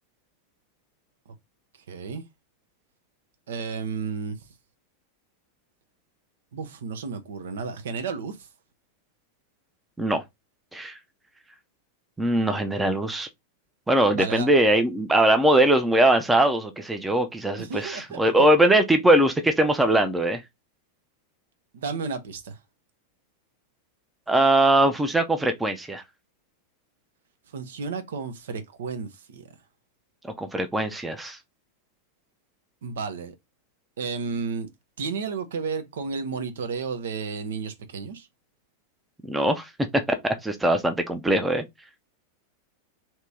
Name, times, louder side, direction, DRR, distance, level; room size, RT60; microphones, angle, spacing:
voice 1, 1.9-2.2 3.5-4.4 6.5-8.5 14.1-14.5 17.6-18.5 21.7-22.6 27.5-29.5 32.8-33.3 34.0-34.7 35.0-38.3, right 5 dB, 60° right, 0.7 m, -32 dB
voice 2, 12.2-13.3 13.9-20.4 24.3-26.0 30.2-31.4 39.2-41.6, right 1 dB, 10° right, 0.6 m, -21 dB
2.9 x 2.9 x 3.5 m
figure-of-eight pair, 90°, 0 cm